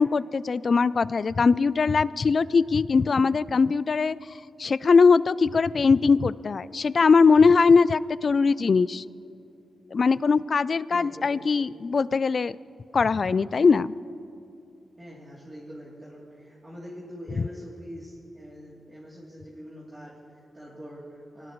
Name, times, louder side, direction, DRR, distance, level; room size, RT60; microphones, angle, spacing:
voice 1, 0.0-4.2 4.6-9.0 9.9-12.6 12.9-13.9, left 5 dB, 45° left, 18 dB, 0.3 m, -21 dB
voice 2, 10.9-11.4 15.0-21.5, equal, 20° right, -7 dB, 3.0 m, -43 dB
24.5 x 18.0 x 3.1 m, 2.7 s
wide cardioid pair, 110°, 0 cm